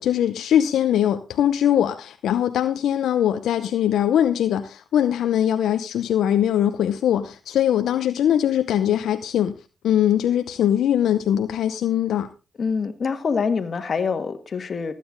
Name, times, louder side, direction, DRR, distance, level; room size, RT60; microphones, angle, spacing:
voice 1, 0.0-9.5 9.8-12.3, left 10 dB, 85° left, 0.7 m, -21 dB
voice 2, 12.6-14.9, left 5 dB, 50° left, 1.9 m, -25 dB
14.0 x 9.2 x 3.9 m
cardioid pair, 60°, 0 cm